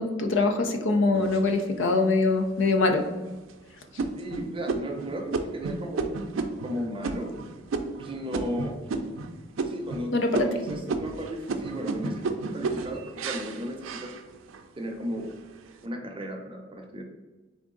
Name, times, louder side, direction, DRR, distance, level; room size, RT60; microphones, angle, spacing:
voice 1, 0.0-3.1 10.1-10.5, left 3 dB, 65° left, 5 dB, 0.5 m, -23 dB
sound 1, 1.1-2.0 2.6-2.7 3.2-3.5 4.0-9.3 9.6-10.1 10.3-14.7 15.1-15.7, right 3 dB, 80° right, 0.4 m, -32 dB
voice 2, 4.1-6.1 6.6-7.4 8.0-8.8 9.6-14.1 14.7-15.3 15.8-17.0, equal, 25° right, 2 dB, 0.7 m, -35 dB
3.8 x 3.5 x 3.7 m, 1.2 s
head